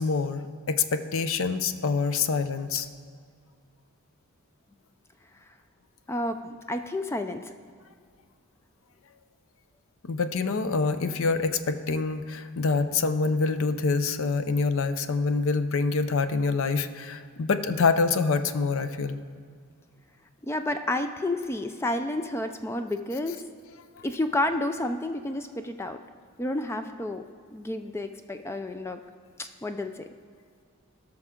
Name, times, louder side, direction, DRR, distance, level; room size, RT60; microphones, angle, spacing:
voice 1, 0.0-2.9 10.0-19.2, left 4 dB, 60° left, 11 dB, 0.5 m, -26 dB
voice 2, 6.1-7.5 20.5-23.4 24.0-26.0 26.4-27.2 27.5-29.0 29.4-30.0, left 1 dB, 10° left, 7 dB, 0.3 m, -30 dB
17.5 x 6.1 x 3.7 m, 2.1 s
head